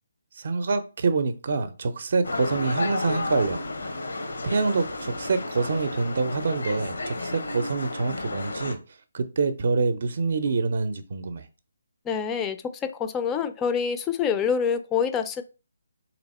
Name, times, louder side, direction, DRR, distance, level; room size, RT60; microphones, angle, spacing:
voice 1, 0.3-3.6 4.4-8.8 9.1-11.5, right 4 dB, 50° right, 0.5 m, -26 dB
sound 1, 2.2-8.7, left 2 dB, 80° left, 1.1 m, -32 dB
voice 2, 12.1-15.4, left 7 dB, 15° left, 0.4 m, -26 dB
3.4 x 3.0 x 4.1 m
hypercardioid pair, 160°, 0 cm